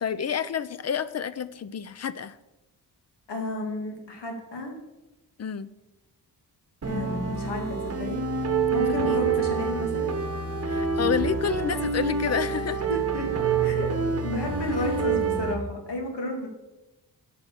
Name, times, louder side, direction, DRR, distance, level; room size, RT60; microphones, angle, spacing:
voice 1, 0.0-2.4 5.4-5.7 8.9-9.2 10.7-12.8, left 7 dB, 40° left, 15 dB, 0.4 m, -29 dB
voice 2, 3.3-4.7 6.9-8.2 8.7-10.1 11.0-11.1 12.9-13.3 13.6-13.9 14.2-16.5, left 1 dB, 90° left, 2 dB, 2.3 m, -31 dB
sound 1, 6.8-15.6, right 5 dB, 35° right, 1.1 m, -27 dB
10.0 x 6.0 x 6.7 m, 1.0 s
wide cardioid pair, 160°, 40 cm